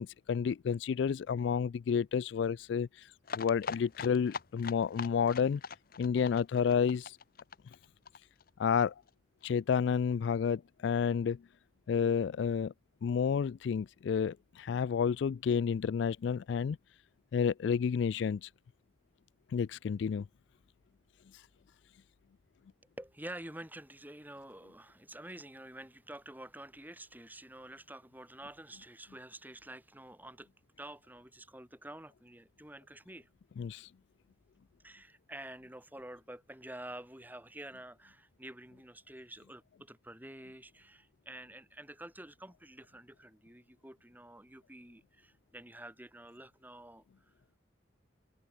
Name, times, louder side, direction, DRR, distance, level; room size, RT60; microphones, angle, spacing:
voice 1, 0.0-2.9 3.3-5.6 6.0-7.1 8.6-8.9 9.4-11.4 11.9-12.7 13.0-16.8 17.3-18.5 19.5-20.3 33.6-33.9, left 6 dB, 65° left, 0.3 m, -30 dB
sound 1, 3.2-8.8 9.1-9.2 9.4-9.5 9.8-9.9, left 5 dB, 50° left, 0.7 m, -42 dB
voice 2, 23.0-30.5 30.8-33.3 34.8-47.3, right 1 dB, 10° right, 5.9 m, -49 dB
head